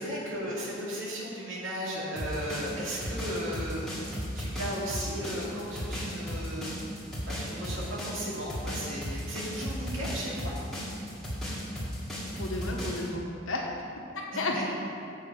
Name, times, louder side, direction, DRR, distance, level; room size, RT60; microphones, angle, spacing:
voice 1, 0.0-10.5 14.3-14.7, equal, 80° right, -6 dB, 2.4 m, -36 dB
sound 1, 2.2-13.1, equal, ahead, 1.8 m, -35 dB
voice 2, 12.3-13.7 13.9-14.7, left 2 dB, 75° left, 0 dB, 1.3 m, -33 dB
7.6 x 5.7 x 6.8 m, 2.5 s
head